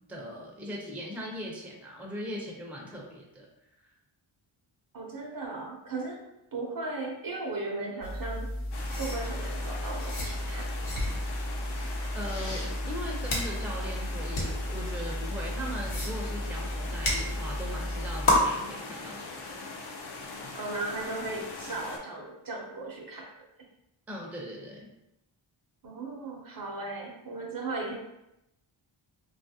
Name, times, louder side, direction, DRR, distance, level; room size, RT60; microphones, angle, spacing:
voice 1, 0.1-3.5 12.1-19.6 24.1-24.9, equal, 5° right, -2 dB, 0.5 m, -39 dB
voice 2, 4.9-6.2 6.5-8.5 9.0-10.7 20.5-23.5 25.8-27.9, right 2 dB, 45° right, 0 dB, 0.6 m, -36 dB
sound 1, 8.0-18.4, left 1 dB, 85° left, 0.9 m, -32 dB
sound 2, 8.7-22.0, left 3 dB, 55° left, 0.6 m, -41 dB
2.8 x 2.4 x 2.7 m, 0.87 s
wide cardioid pair, 70°, 49 cm